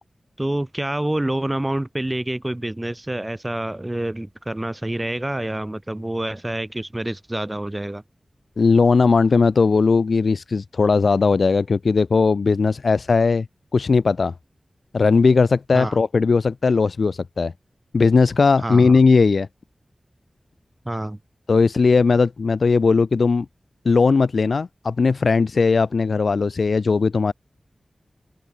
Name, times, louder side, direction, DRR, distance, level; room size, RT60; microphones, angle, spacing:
voice 1, 0.4-8.0 15.7-16.0 18.6-19.0 20.9-21.2, right 1 dB, 20° right, 0.3 m, -27 dB
voice 2, 8.6-13.5 13.7-14.3 14.9-17.5 17.9-19.5 21.5-23.5 23.9-27.3, left 4 dB, 75° left, 0.4 m, -18 dB
open air
wide cardioid pair, 90°, 0 cm